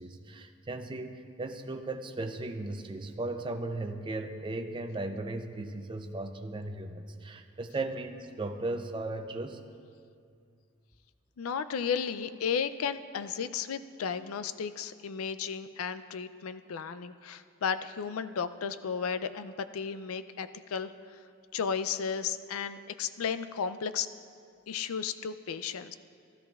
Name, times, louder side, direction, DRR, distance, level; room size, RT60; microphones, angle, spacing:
voice 1, 0.0-9.6 22.7-22.8, right 2 dB, 25° right, 6 dB, 0.5 m, -36 dB
voice 2, 11.4-20.9 21.5-24.1 24.7-25.9, left 6 dB, 85° left, 12 dB, 0.4 m, -34 dB
13.5 x 13.5 x 2.4 m, 2.3 s
head